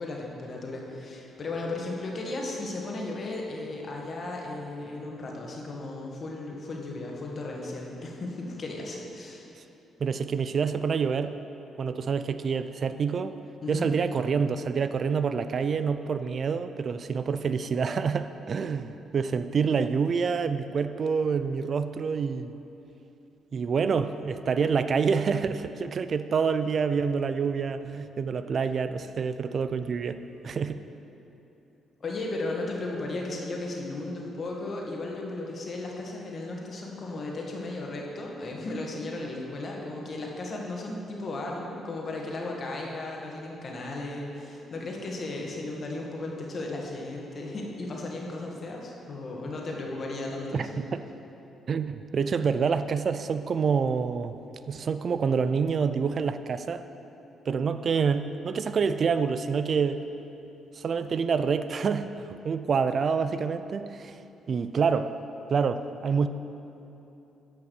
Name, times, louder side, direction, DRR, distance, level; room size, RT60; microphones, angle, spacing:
voice 1, 0.0-9.5 13.6-13.9 32.0-50.8, left 2 dB, 45° left, -1 dB, 1.7 m, -35 dB
voice 2, 10.0-11.3 11.8-13.4 13.7-22.5 23.5-30.8 50.5-51.0 51.7-54.3 54.7-56.8 57.5-60.0 60.7-64.2 64.5-65.1 65.5-66.3, right 5 dB, 50° right, 11 dB, 0.4 m, -27 dB
10.0 x 5.7 x 7.0 m, 2.9 s
cardioid pair, 90°, 0 cm